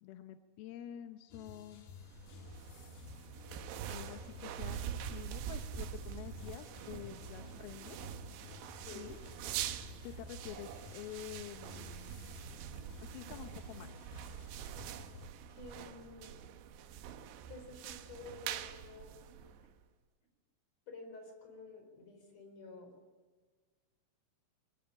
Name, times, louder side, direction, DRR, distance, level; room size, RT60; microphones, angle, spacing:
voice 1, 0.0-1.9 3.9-8.0 9.0-9.2 10.0-12.4 13.0-14.1, left 12 dB, 80° left, 8 dB, 2.2 m, -48 dB
sound 1, 1.3-15.3, left 2 dB, 50° left, 3.4 m, -53 dB
sound 2, 2.0-19.8, right 10 dB, 75° right, 2.9 m, -45 dB
voice 2, 8.7-9.1 15.5-16.4 17.5-19.2 20.9-22.9, left 3 dB, 35° left, 5 dB, 5.3 m, -51 dB
22.0 x 19.5 x 8.7 m, 1.4 s
omnidirectional pair, 5.5 m